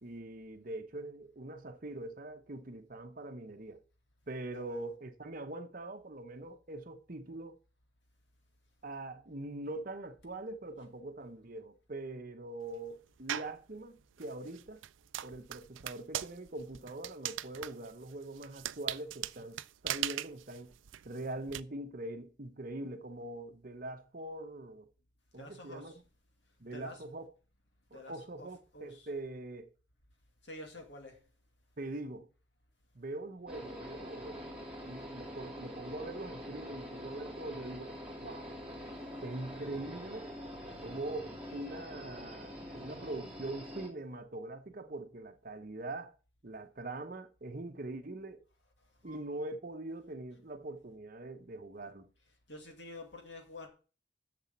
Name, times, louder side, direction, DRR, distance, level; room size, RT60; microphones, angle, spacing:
voice 1, 0.0-3.8 4.3-7.6 8.8-14.8 15.2-20.7 21.0-24.9 25.3-25.9 26.6-27.3 27.9-29.7 31.8-32.3 32.9-34.5 34.8-38.5 39.2-40.3 40.8-46.1 46.4-48.4 49.0-52.1, right 2 dB, 45° right, 1.0 m, -43 dB
voice 2, 4.5-4.9 25.4-26.0 26.7-27.1 27.9-29.1 30.4-31.2 49.0-49.3 52.5-53.7, left 1 dB, 70° left, 2.6 m, -49 dB
sound 1, 13.3-13.6 14.2-21.6, right 12 dB, 90° right, 0.4 m, -40 dB
sound 2, 33.5-43.9, equal, 5° right, 3.1 m, -45 dB
7.3 x 6.9 x 7.4 m
head